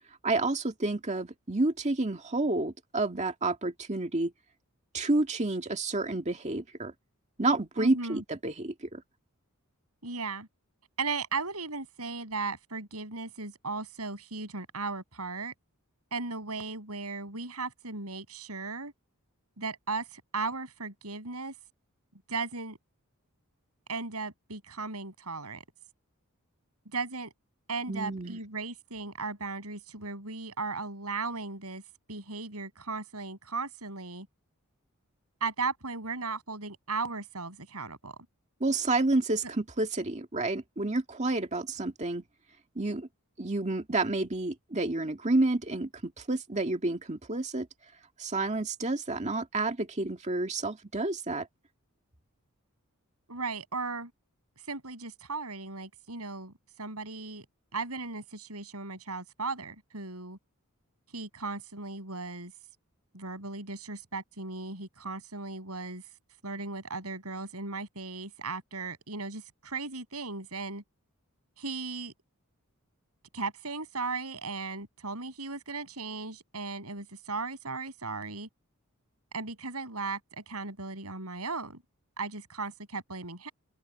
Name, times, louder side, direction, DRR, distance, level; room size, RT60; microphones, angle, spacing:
voice 1, 0.2-4.3 4.9-6.9 7.4-9.0 27.9-28.4 38.6-42.2 42.8-43.1 43.4-47.7 48.2-51.5, right 2 dB, 30° right, 2.0 m, -29 dB
voice 2, 7.8-8.2 10.0-10.5 11.0-15.5 16.1-18.9 19.6-21.5 22.3-22.8 23.9-25.6 26.9-27.3 27.7-31.8 32.1-34.3 35.4-38.2 39.4-39.5 53.3-54.1 54.7-56.5 56.8-57.5 57.7-60.4 61.1-62.5 63.1-66.0 66.4-70.8 71.6-72.1 73.3-78.5 79.3-81.8 82.2-83.5, right 4 dB, 80° right, 7.0 m, -36 dB
open air
head